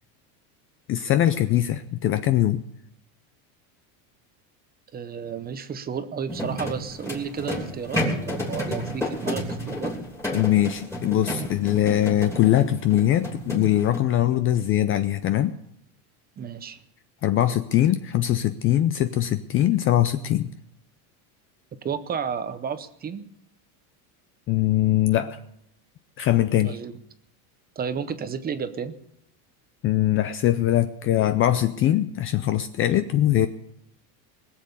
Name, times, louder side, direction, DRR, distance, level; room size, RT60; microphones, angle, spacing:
voice 1, 0.9-2.6 10.3-15.5 17.2-20.5 24.5-25.4 26.2-26.8 29.8-33.5, left 12 dB, 30° left, 11 dB, 0.4 m, -22 dB
voice 2, 4.9-9.9 16.4-16.8 21.8-23.3 26.6-26.9 27.8-28.9, right 7 dB, 20° right, 11 dB, 0.7 m, -32 dB
sound 1, 6.3-14.0, equal, 5° left, 3.0 m, -31 dB
20.5 x 7.5 x 6.8 m, 0.75 s
supercardioid pair, 145°, 45 cm